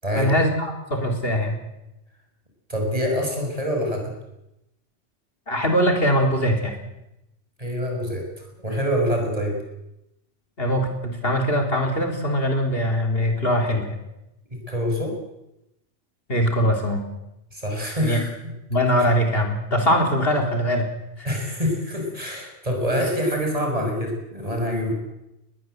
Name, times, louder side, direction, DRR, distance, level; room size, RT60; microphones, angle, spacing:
voice 1, 0.1-1.6 5.5-6.7 10.6-14.0 16.3-17.0 18.0-18.2 18.7-20.9 22.9-23.0, equal, 55° left, 3 dB, 4.0 m, -22 dB
voice 2, 2.7-4.1 7.6-9.5 14.7-15.1 17.5-18.3 19.0-19.1 21.2-24.9, equal, 30° right, 1 dB, 6.6 m, -25 dB
21.0 x 21.0 x 8.0 m, 0.89 s
omnidirectional pair, 1.2 m